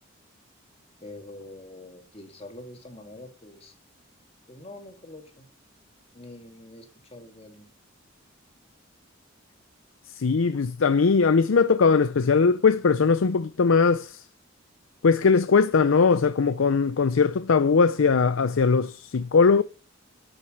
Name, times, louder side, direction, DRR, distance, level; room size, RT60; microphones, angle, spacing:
voice 1, 1.0-3.7 4.5-5.5 6.1-7.7, left 1 dB, 30° left, 2.2 m, -45 dB
voice 2, 10.2-14.2 15.0-19.6, left 5 dB, 85° left, 0.5 m, -20 dB
12.5 x 6.4 x 6.5 m
head